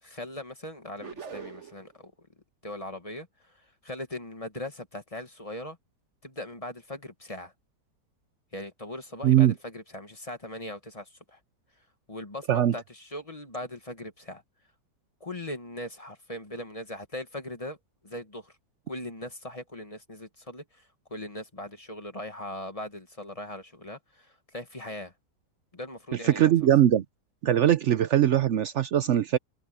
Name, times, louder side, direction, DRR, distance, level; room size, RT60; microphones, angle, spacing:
voice 1, 0.0-2.1 2.6-5.8 6.2-7.5 8.5-11.4 12.1-14.4 15.2-17.8 18.0-18.5 18.9-25.1 25.7-26.5, left 1 dB, 20° left, 1.6 m, -39 dB
sound 1, 1.0-1.9, right 6 dB, 45° right, 1.5 m, -42 dB
voice 2, 9.2-9.5 12.5-12.7 26.2-27.0 27.4-29.4, right 11 dB, 75° right, 0.6 m, -21 dB
omnidirectional pair, 1.9 m